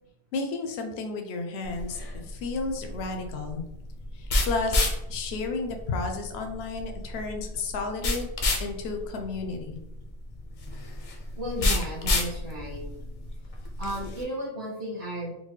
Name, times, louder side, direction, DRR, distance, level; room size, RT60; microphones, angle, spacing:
voice 1, 0.3-3.6 4.1-8.3 8.6-9.8, left 3 dB, 75° left, 4 dB, 0.8 m, -32 dB
sound 1, 1.6-14.2, left 2 dB, 45° left, 0.5 m, -30 dB
voice 2, 11.4-12.8 13.8-15.3, equal, 30° right, -9 dB, 0.8 m, -34 dB
3.7 x 2.1 x 3.2 m, 0.88 s
omnidirectional pair, 1.1 m